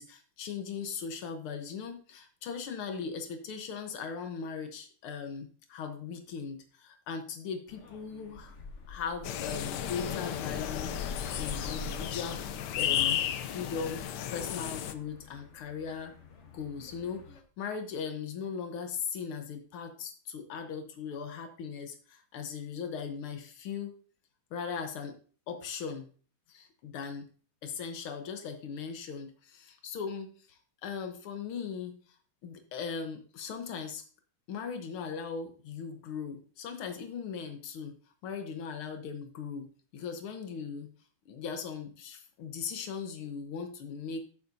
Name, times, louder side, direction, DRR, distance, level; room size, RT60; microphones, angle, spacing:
voice 1, 0.0-8.6 8.9-13.2 13.5-16.1 16.5-23.9 24.5-25.2 25.5-26.1 26.5-27.3 27.6-32.0 32.4-34.0 34.5-37.9 38.2-39.7 39.9-40.9 41.3-44.3, left 6 dB, 90° left, 6 dB, 2.0 m, -39 dB
sound 1, 7.7-17.4, left 3 dB, 40° left, 1.2 m, -46 dB
sound 2, 9.2-14.9, left 10 dB, 70° left, 1.1 m, -33 dB
13.5 x 7.1 x 2.7 m, 0.40 s
omnidirectional pair, 2.3 m